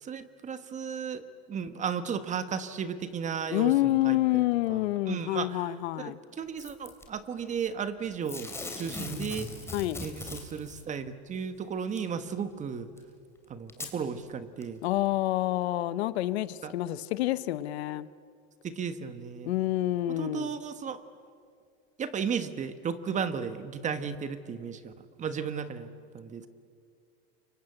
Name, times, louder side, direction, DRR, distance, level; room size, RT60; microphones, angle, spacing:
voice 1, 0.0-1.2 1.5-4.2 4.7-5.7 6.0-9.5 10.0-12.9 13.5-14.8 16.6-16.7 18.6-19.5 20.2-21.0 22.0-24.9 25.2-25.9 26.1-26.5, right 6 dB, 25° right, 11 dB, 1.3 m, -34 dB
voice 2, 3.5-6.2 9.7-10.0 14.8-18.1 19.4-20.5, left 16 dB, 85° left, 15 dB, 1.1 m, -28 dB
Packing tape duct tape / Tearing, 6.6-7.1 8.3-10.8 12.0-12.1 13.0-13.1 13.7-13.9 14.6-14.7, left 3 dB, 10° left, 3.0 m, -39 dB
29.0 x 24.5 x 8.0 m, 2.3 s
supercardioid pair, 145°, 31 cm